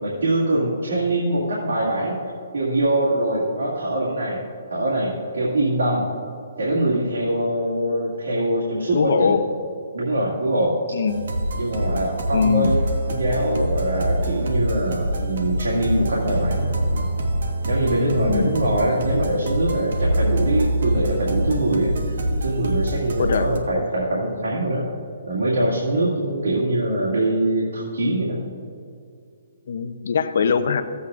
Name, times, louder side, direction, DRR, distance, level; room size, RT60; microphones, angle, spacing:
voice 1, 0.0-2.2 2.5-4.4 4.7-6.0 6.6-9.3 9.9-10.8 11.5-12.8 13.1-17.1 17.7-21.9 22.3-24.8 25.2-28.4, right 1 dB, 85° right, -7 dB, 2.2 m, -23 dB
voice 2, 8.9-9.4 10.9-11.2 12.3-12.8 18.1-18.5 23.2-23.5 29.7-30.8, left 6 dB, 65° left, 10 dB, 0.6 m, -21 dB
sound 1, 11.1-23.6, right 1 dB, 65° right, 1.3 m, -25 dB
15.0 x 8.1 x 2.5 m, 2.4 s
hypercardioid pair, 160°, 0 cm